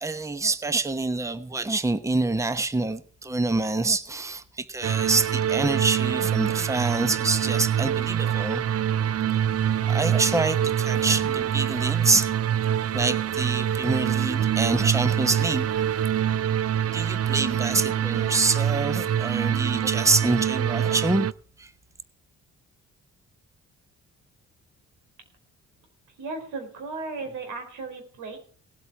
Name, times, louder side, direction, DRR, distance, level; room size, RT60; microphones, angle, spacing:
voice 1, 0.0-8.6 9.9-12.3 12.9-15.7 16.9-21.3 21.6-21.7, right 3 dB, 10° right, 1.0 m, -26 dB
sound 1, 4.8-21.3, right 9 dB, 55° right, 0.6 m, -25 dB
voice 2, 26.2-28.4, right 3 dB, 90° right, 4.5 m, -35 dB
18.0 x 8.2 x 5.9 m
cardioid pair, 90°, 30 cm